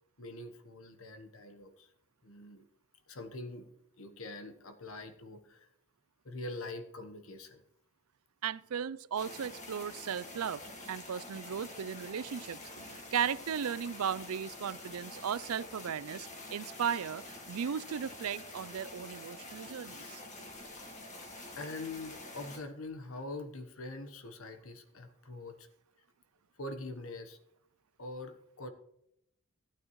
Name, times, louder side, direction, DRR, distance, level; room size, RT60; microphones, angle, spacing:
voice 1, 0.2-1.9 2.2-2.6 3.1-3.7 4.0-5.7 6.2-7.6 19.5-20.2 21.5-25.7 26.6-27.4 28.0-28.7, left 2 dB, 75° left, 8 dB, 1.2 m, -44 dB
voice 2, 8.4-10.6 10.9-20.2, right 8 dB, 85° right, 18 dB, 0.4 m, -36 dB
sound 1, 9.2-22.6, left 2 dB, 35° left, 1.9 m, -47 dB
15.0 x 8.9 x 3.1 m, 0.76 s
head